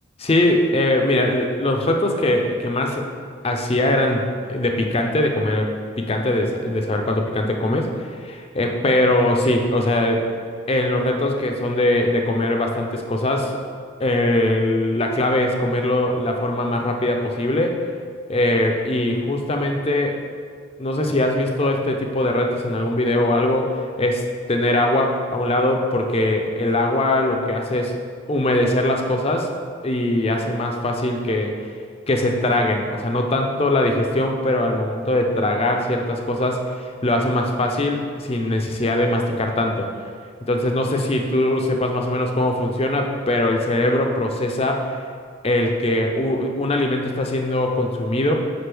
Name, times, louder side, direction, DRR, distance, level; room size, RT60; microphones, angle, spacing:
voice 1, 0.2-3.1 3.4-7.9 8.2-10.2 10.7-13.6 14.0-17.8 18.3-20.2 20.8-28.0 28.3-29.5 29.8-31.6 32.1-39.9 40.5-45.0 45.4-48.3, left 1 dB, 30° left, 3 dB, 0.5 m, -21 dB
6.0 x 5.0 x 3.4 m, 2.1 s
head